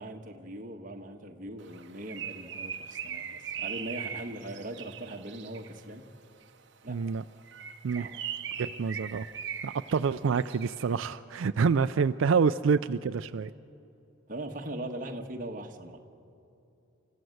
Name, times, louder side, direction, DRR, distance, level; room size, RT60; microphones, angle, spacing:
voice 1, 0.0-6.1 6.8-7.1 7.9-8.1 14.3-16.0, right 1 dB, 40° right, 2 dB, 1.5 m, -40 dB
Bird, 1.7-5.8 7.4-10.9, right 8 dB, 60° right, 0.9 m, -40 dB
voice 2, 6.9-7.2 7.8-8.1 8.6-9.3 9.6-13.5, right 5 dB, 85° right, 11 dB, 0.4 m, -27 dB
29.5 x 14.5 x 7.9 m, 2.7 s
head